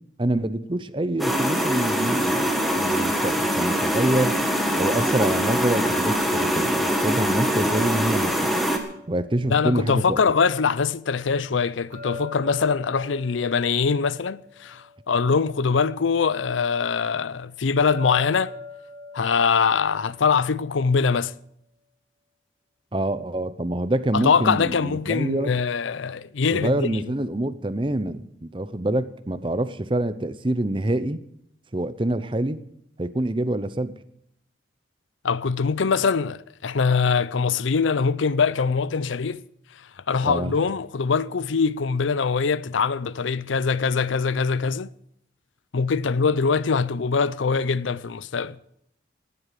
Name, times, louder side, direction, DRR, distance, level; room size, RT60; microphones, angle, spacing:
voice 1, 0.2-2.5 2.8-4.4 4.8-8.5 9.1-10.2 22.9-25.5 26.5-31.2 31.7-32.6 33.0-33.9 40.2-40.5, right 1 dB, 25° right, 0.7 m, -26 dB
sound 1, 1.2-8.8, equal, ahead, 1.6 m, -23 dB
sound 2, 7.6-10.7 11.9-15.4 17.9-21.0, left 3 dB, 75° right, 3.8 m, -42 dB
voice 2, 9.5-18.5 19.1-21.3 24.1-27.0 35.2-39.4 40.1-44.9 45.7-48.6, left 5 dB, 85° left, 0.5 m, -23 dB
18.0 x 8.2 x 7.5 m
head